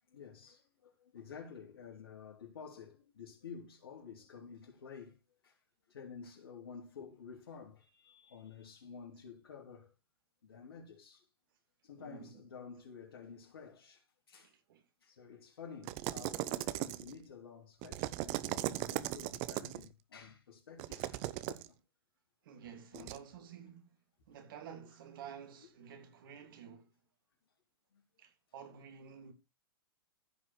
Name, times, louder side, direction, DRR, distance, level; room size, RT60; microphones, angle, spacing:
voice 1, 0.1-5.2 5.4-5.6 5.9-9.9 10.4-11.3 11.8-14.5 15.0-21.2 21.5-21.8 22.9-23.2 24.3-24.4 26.4-26.5 27.9-28.0, left 6 dB, 75° left, 3.6 m, -51 dB
voice 2, 12.0-12.4 14.3-14.8 22.4-23.9 24.3-26.9 28.2-29.3, right 8 dB, 60° right, 2.8 m, -51 dB
sound 1, 15.8-17.2 17.8-19.9 20.8-21.7 22.9-23.2, right 17 dB, 40° right, 0.8 m, -38 dB
15.0 x 5.4 x 4.5 m
hypercardioid pair, 115°, 13 cm